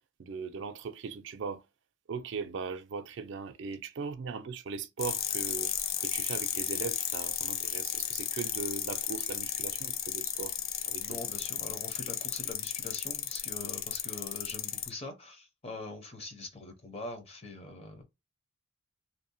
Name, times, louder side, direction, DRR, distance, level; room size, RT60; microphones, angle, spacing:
voice 1, 0.2-1.6 2.1-5.7 6.0-10.6 10.9-11.2, right 5 dB, 60° right, 0.4 m, -39 dB
sound 1, 5.0-14.9, left 10 dB, 75° left, 0.4 m, -34 dB
voice 2, 11.0-18.0, left 2 dB, 30° left, 0.7 m, -43 dB
2.7 x 2.0 x 2.6 m
head